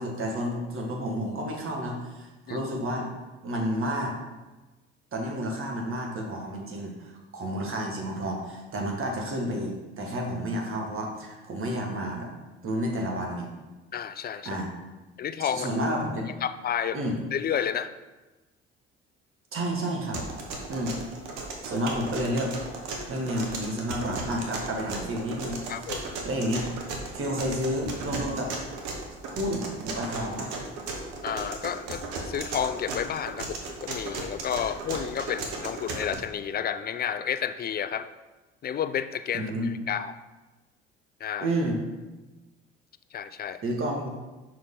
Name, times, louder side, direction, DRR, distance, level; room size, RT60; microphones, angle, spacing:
voice 1, 0.0-3.1 3.4-4.1 5.1-12.3 12.6-13.5 14.4-14.7 15.4-16.3 16.9-17.2 19.5-20.2 20.7-21.0 21.6-22.5 23.1-25.6 26.2-26.7 27.1-28.5 29.3-30.5 39.3-39.7 41.4-41.8 43.6-44.1, equal, 45° right, 0 dB, 1.6 m, -30 dB
voice 2, 13.9-14.6 15.2-15.7 16.4-17.0 17.3-17.9 25.7-26.0 31.2-38.1 38.6-40.1 41.2-41.5 43.1-43.6, left 8 dB, 30° left, 13 dB, 0.4 m, -31 dB
sound 1, 20.1-36.2, right 3 dB, 70° right, 1.1 m, -36 dB
5.6 x 4.9 x 3.8 m, 1.2 s
hypercardioid pair, 55°, 30 cm